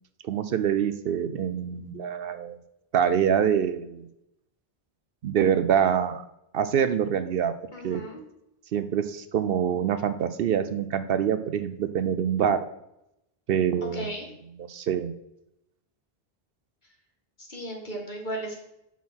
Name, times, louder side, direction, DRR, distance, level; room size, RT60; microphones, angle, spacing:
voice 1, 0.2-2.6 2.9-4.1 5.2-6.2 6.5-7.5 7.8-8.0 8.7-12.6 13.5-14.1 14.6-15.1, right 8 dB, 70° right, 11 dB, 0.8 m, -25 dB
voice 2, 7.7-8.2 13.9-14.3 17.4-18.6, right 1 dB, 50° left, 1 dB, 2.0 m, -35 dB
6.1 x 5.5 x 6.1 m, 0.83 s
omnidirectional pair, 1.0 m